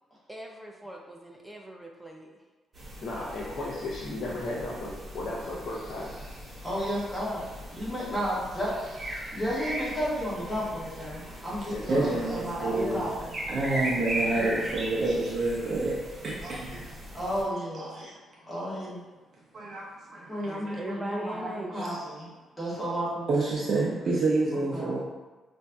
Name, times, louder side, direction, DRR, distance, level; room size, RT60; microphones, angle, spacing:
voice 1, 0.3-2.3 12.5-13.1 14.3-14.7 20.4-22.0, right 1 dB, 10° right, 1 dB, 0.4 m, -39 dB
sound 1, 2.7-17.4, right 1 dB, 30° right, 1.2 m, -39 dB
voice 2, 3.0-6.2 11.7-12.3 18.4-18.5, left 2 dB, 55° left, -6 dB, 0.5 m, -35 dB
voice 3, 6.6-13.1 17.1-17.9 18.5-19.0 20.3-22.3 22.6-23.4 24.7-25.0, equal, 10° left, -9 dB, 1.3 m, -33 dB
voice 4, 11.9-13.1 13.5-16.0 16.2-16.8 17.7-18.1 19.5-20.8 21.7-22.0 23.3-25.0, right 2 dB, 50° right, -5 dB, 0.6 m, -28 dB
5.1 x 2.5 x 2.3 m, 1.3 s
cardioid pair, 135°, 0 cm